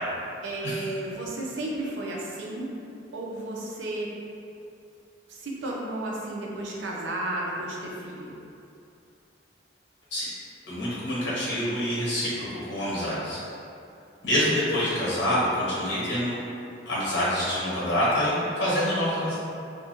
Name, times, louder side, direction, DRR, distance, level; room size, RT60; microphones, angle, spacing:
voice 1, 0.4-2.7 3.1-4.1 5.3-8.3, right 1 dB, 85° right, -3 dB, 0.5 m, -33 dB
voice 2, 10.7-13.4 14.2-16.3 16.9-19.3, equal, 75° left, -9 dB, 1.0 m, -26 dB
2.5 x 2.1 x 2.7 m, 2.6 s
head